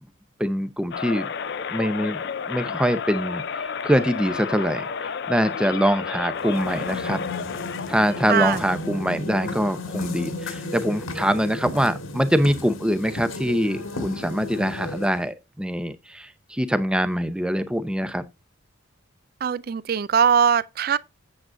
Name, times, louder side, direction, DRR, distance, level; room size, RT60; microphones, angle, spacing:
voice 1, 0.4-1.3 1.7-2.2 2.5-7.2 7.9-18.2, equal, 5° right, 0.7 m, -24 dB
sound 1, 0.9-8.9, left 6 dB, 55° left, 0.5 m, -31 dB
sound 2, 6.4-15.3, left 2 dB, 90° left, 1.8 m, -34 dB
voice 2, 8.3-8.6 19.4-21.0, right 7 dB, 45° right, 0.4 m, -21 dB
8.6 x 7.6 x 2.6 m
head